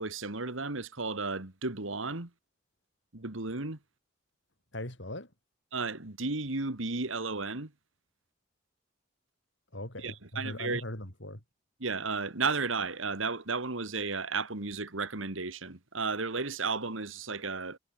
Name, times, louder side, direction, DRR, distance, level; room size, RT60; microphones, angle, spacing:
voice 1, 0.0-2.3 3.1-3.8 5.7-7.7 10.0-10.8 11.8-17.8, right 4 dB, 80° right, 2.3 m, -33 dB
voice 2, 4.7-5.3 9.7-11.4, left 1 dB, 60° left, 6.2 m, -40 dB
head